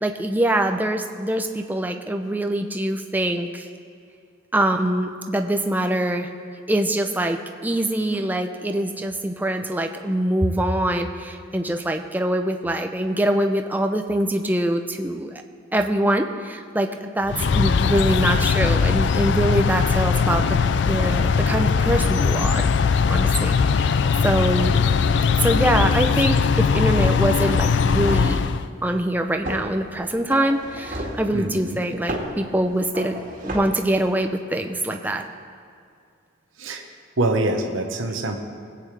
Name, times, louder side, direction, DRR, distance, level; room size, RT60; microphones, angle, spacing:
voice 1, 0.0-3.7 4.5-6.3 6.7-15.4 15.7-20.6 20.8-22.7 23.1-24.8 25.4-28.5 28.8-33.2 33.4-35.2, right 1 dB, 10° right, 5 dB, 0.5 m, -24 dB
sound 1, 17.3-28.7, left 5 dB, 65° left, 0.3 m, -20 dB
sound 2, 27.5-28.5 29.4-29.7 30.3-31.3 32.1-32.4 32.9-33.6, right 1 dB, 40° right, 1.9 m, -32 dB
voice 2, 31.3-31.8 36.6-36.8 37.2-38.4, right 2 dB, 85° right, 3 dB, 1.1 m, -24 dB
21.0 x 8.6 x 3.4 m, 2.3 s
head